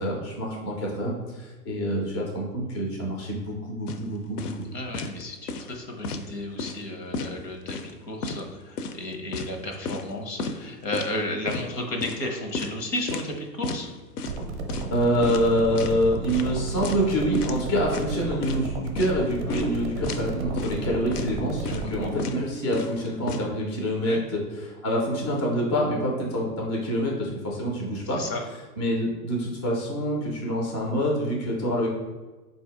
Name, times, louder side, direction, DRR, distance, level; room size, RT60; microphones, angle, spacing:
voice 1, 0.0-4.5 14.9-28.2 28.8-31.9, equal, 20° left, -2 dB, 0.3 m, -26 dB
sound 1, 3.9-4.0 4.4-4.6 4.9-5.2 5.5-6.3 6.6-6.8 7.1-7.9 8.2-8.4 8.8-10.1 10.4-10.6 10.9-11.1 11.5-11.7 12.0-13.3 13.6-13.8 14.2-14.4 14.7-15.0 15.2-16.0 16.3-16.5 16.8-17.1 17.3-17.6 17.9-18.6 19.0-19.1 19.5-19.8 20.0-20.3 20.6-20.8 21.1-21.3 21.7-21.9 22.2-22.4 22.7-23.5, left 3 dB, 70° left, 0.6 m, -33 dB
voice 2, 4.7-13.9 19.5-19.6 21.6-22.1 24.1-24.2 28.1-28.4, left 1 dB, 85° left, 3 dB, 1.0 m, -33 dB
sound 2, 14.3-22.2, right 3 dB, 35° right, 0.5 m, -33 dB
4.0 x 2.6 x 3.5 m, 1.2 s
hypercardioid pair, 120°, 48 cm